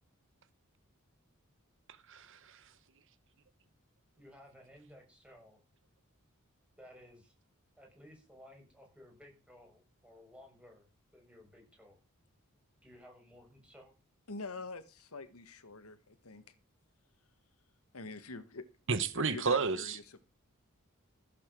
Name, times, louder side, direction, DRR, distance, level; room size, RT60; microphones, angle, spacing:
voice 1, 2.1-2.6 18.9-20.0, right 5 dB, 60° right, 1.1 m, -32 dB
voice 2, 4.2-5.6 6.8-7.3 7.8-10.8 11.1-12.0 12.8-13.9, left 1 dB, 5° right, 6.5 m, -57 dB
voice 3, 14.3-16.4 17.9-18.6 19.1-20.2, left 3 dB, 90° left, 1.7 m, -45 dB
15.5 x 8.3 x 6.2 m
head